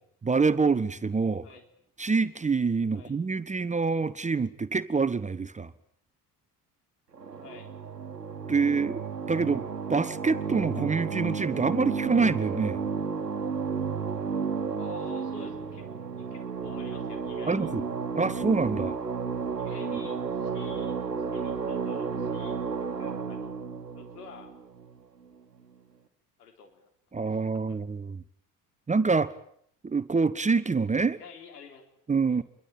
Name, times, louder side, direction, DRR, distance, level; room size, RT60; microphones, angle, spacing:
voice 1, 0.2-1.5 2.0-5.7 8.5-9.0 9.3-9.6 9.9-12.8 17.5-17.8 18.1-19.0 27.1-28.2 28.9-29.3 29.8-31.2 32.1-32.4, right 4 dB, 15° right, 15 dB, 1.1 m, -26 dB
sound 1, 7.1-25.3, right 5 dB, 85° right, 1.3 m, -33 dB
voice 2, 14.7-15.9 16.2-17.7 19.6-21.0 21.3-22.6 23.0-23.5 24.0-24.5 26.4-26.9 27.3-27.4 27.7-27.9 31.2-31.9 32.3-32.4, left 6 dB, 75° left, 5 dB, 4.0 m, -48 dB
27.0 x 23.0 x 9.0 m, 0.68 s
figure-of-eight pair, 55°, 47 cm